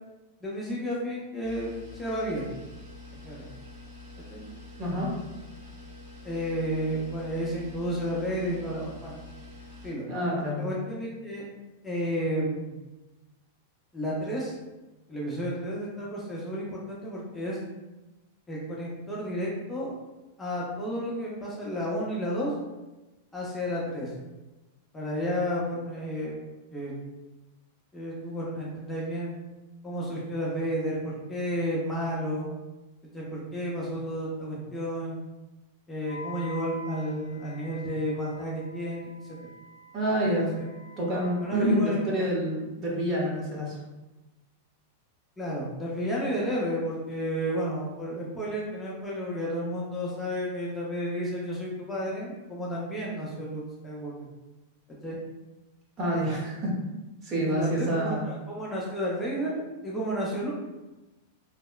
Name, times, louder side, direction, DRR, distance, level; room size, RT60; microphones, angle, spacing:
voice 1, 0.4-2.5 3.2-3.5 4.3-4.4 6.2-9.2 9.8-10.0 10.6-11.4 11.8-12.7 13.9-14.5 15.1-17.6 18.5-19.9 20.4-22.5 23.3-24.1 24.9-26.4 26.7-26.9 27.9-29.4 29.8-32.5 33.1-35.2 35.9-39.4 40.2-40.7 41.4-42.3 45.4-54.1 55.0-55.2 57.5-59.6 59.8-60.5, equal, 10° left, -5 dB, 0.6 m, -32 dB
sound 1, 1.4-9.9, left 2 dB, 70° right, 1.3 m, -46 dB
voice 2, 4.8-5.1 10.1-10.6 39.9-40.5 41.0-43.8 56.0-56.7 57.2-58.3, right 1 dB, 35° right, -4 dB, 0.9 m, -27 dB
Wind instrument woodwind instrument, 36.0-42.2, left 1 dB, 90° left, 0.4 m, -46 dB
2.9 x 2.0 x 2.3 m, 1.1 s
hypercardioid pair, 110°, 0 cm